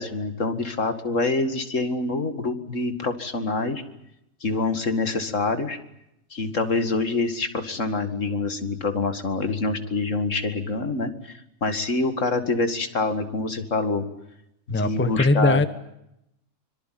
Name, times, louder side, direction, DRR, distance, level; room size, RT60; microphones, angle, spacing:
voice 1, 0.0-3.8 4.4-5.8 6.3-14.1 14.7-15.6, left 3 dB, 70° left, 9 dB, 2.5 m, -26 dB
voice 2, 14.7-15.7, left 2 dB, 10° left, 11 dB, 1.2 m, -20 dB
25.0 x 23.5 x 9.4 m, 0.82 s
omnidirectional pair, 1.4 m